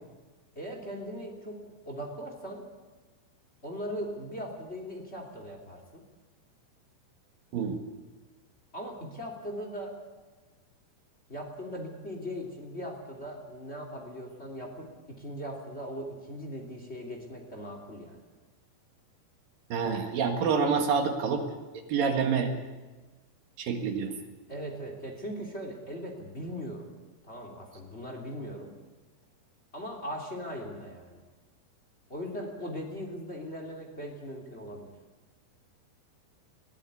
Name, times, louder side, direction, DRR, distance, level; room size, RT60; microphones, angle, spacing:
voice 1, 0.5-2.6 3.6-6.0 8.7-9.9 11.3-18.2 24.5-26.9 27.2-28.7 29.7-31.2 32.1-34.9, equal, 15° left, 2 dB, 2.5 m, -39 dB
voice 2, 19.7-21.4 21.7-22.5 23.6-24.2, right 5 dB, 60° right, 4 dB, 3.1 m, -27 dB
22.5 x 15.5 x 8.4 m, 1.3 s
omnidirectional pair, 5.3 m